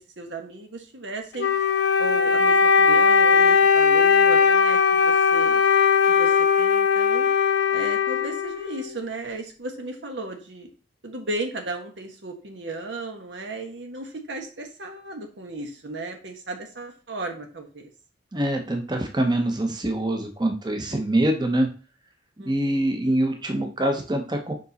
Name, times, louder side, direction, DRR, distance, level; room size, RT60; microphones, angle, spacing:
voice 1, 0.2-1.5 2.0-5.6 6.1-7.3 7.7-10.7 11.0-17.9 20.9-21.3 22.4-22.9, right 2 dB, 80° right, 4 dB, 1.3 m, -35 dB
Wind instrument woodwind instrument, 1.4-8.9, left 6 dB, 70° left, 0.6 m, -19 dB
voice 2, 18.3-21.7 22.4-24.5, right 1 dB, 25° right, 4 dB, 0.8 m, -24 dB
5.2 x 5.1 x 4.1 m, 0.36 s
head